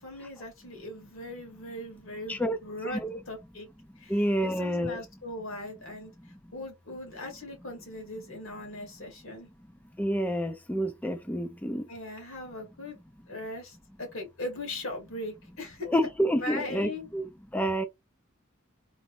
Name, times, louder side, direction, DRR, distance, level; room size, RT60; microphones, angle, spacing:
voice 1, 0.0-3.7 4.0-6.1 6.5-9.5 11.9-13.0 13.3-15.9 16.3-17.1, left 1 dB, 75° left, 2.3 m, -39 dB
voice 2, 2.8-3.2 4.1-5.0 10.0-11.8 15.9-17.3 17.5-17.8, equal, 10° left, 0.4 m, -28 dB
3.9 x 3.5 x 3.1 m
head